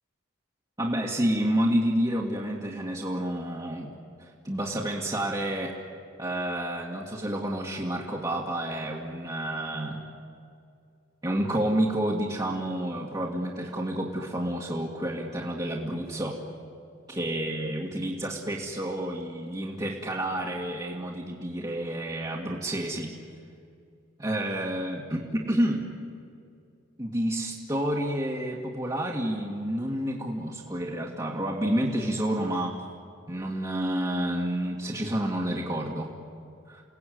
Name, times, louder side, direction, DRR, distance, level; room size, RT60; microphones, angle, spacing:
voice 1, 0.8-3.9 4.2-5.8 6.2-10.0 11.2-16.4 17.1-23.2 24.2-25.9 27.0-32.8 33.3-36.1 36.7-36.8, right 1 dB, 20° right, -4 dB, 2.0 m, -29 dB
29.0 x 18.0 x 9.4 m, 2.4 s
head